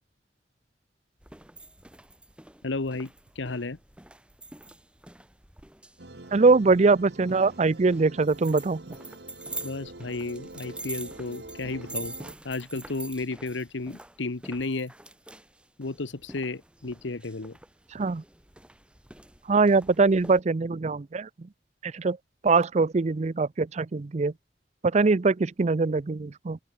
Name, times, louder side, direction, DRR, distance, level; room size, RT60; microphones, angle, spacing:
sound 1, 1.2-20.4, right 2 dB, 5° right, 1.2 m, -45 dB
voice 1, 2.6-3.1 3.4-3.8 9.6-12.1 12.4-14.9 15.8-17.6, left 3 dB, 90° left, 1.1 m, -33 dB
sound 2, 6.0-12.3, right 2 dB, 65° right, 2.0 m, -45 dB
voice 2, 6.3-9.0 17.9-18.2 19.5-21.5 21.8-22.2 22.4-24.3 24.8-26.6, right 4 dB, 40° right, 0.5 m, -23 dB
open air
head